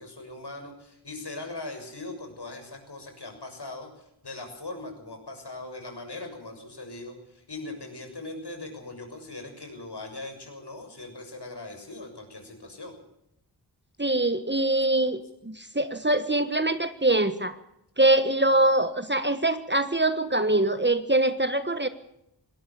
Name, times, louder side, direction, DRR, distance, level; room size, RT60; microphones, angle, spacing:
voice 1, 0.0-12.9, left 2 dB, 60° left, 4 dB, 6.9 m, -40 dB
voice 2, 14.0-17.6 18.0-21.9, right 2 dB, 25° right, 11 dB, 1.5 m, -23 dB
21.0 x 18.0 x 7.1 m, 0.80 s
cardioid pair, 40°, 45 cm